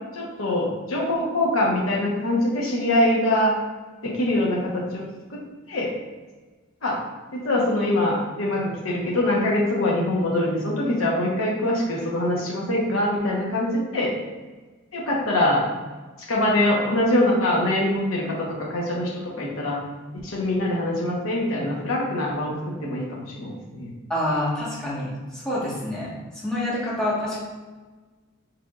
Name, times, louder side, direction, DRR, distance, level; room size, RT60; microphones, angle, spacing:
voice 1, 0.1-3.6 4.0-5.0 5.3-5.4 5.7-5.9 6.8-7.0 7.3-14.1 14.9-15.7 16.3-19.8 20.2-23.1 23.3-23.9, left 1 dB, 80° left, -4 dB, 1.1 m, -23 dB
voice 2, 24.1-25.1 25.4-26.1 26.4-27.4, left 1 dB, 5° left, -9 dB, 1.4 m, -26 dB
4.9 x 4.5 x 2.4 m, 1.3 s
head